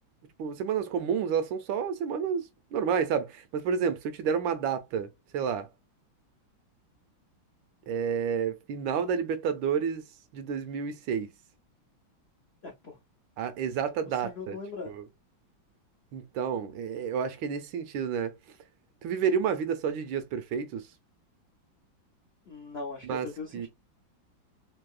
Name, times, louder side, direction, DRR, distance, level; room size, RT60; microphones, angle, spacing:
voice 1, 0.4-2.5 2.7-5.7 7.9-10.0 10.3-11.3 13.4-14.6 14.9-15.0 16.1-18.4 19.0-20.8 23.1-23.3 23.5-23.7, right 7 dB, 80° right, 1.3 m, -30 dB
voice 2, 12.6-13.0 13.9-14.9 22.5-23.7, left 4 dB, 90° left, 0.5 m, -40 dB
3.5 x 2.7 x 2.3 m
omnidirectional pair, 2.2 m